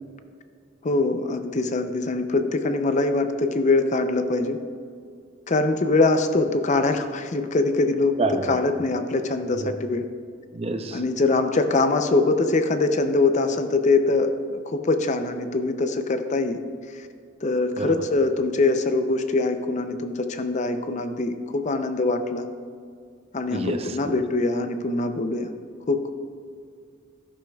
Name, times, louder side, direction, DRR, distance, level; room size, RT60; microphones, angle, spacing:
voice 1, 0.8-4.6 5.5-10.0 10.9-16.6 16.9-17.0 17.4-22.4 23.3-25.5 25.9-26.1, left 3 dB, 40° left, 8 dB, 0.5 m, -23 dB
voice 2, 8.2-8.6 9.6-9.8 10.5-11.0 17.8-18.0 23.5-23.8 24.0-24.2, right 2 dB, 30° right, 7 dB, 0.6 m, -27 dB
11.5 x 11.0 x 2.3 m, 2.2 s
head